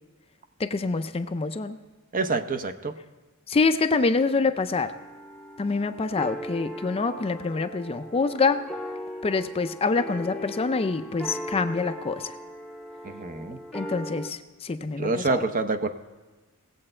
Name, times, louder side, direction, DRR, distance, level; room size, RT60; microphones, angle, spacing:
voice 1, 0.6-1.8 3.5-4.9 5.6-8.6 9.2-12.3 13.7-15.4, left 4 dB, 25° left, 9 dB, 0.4 m, -26 dB
voice 2, 2.1-2.9 13.0-13.6 15.0-15.9, right 3 dB, 40° right, 7 dB, 0.7 m, -27 dB
sound 1, 4.8-14.3, left 1 dB, ahead, 0.9 m, -38 dB
18.5 x 7.7 x 4.4 m, 1.3 s
head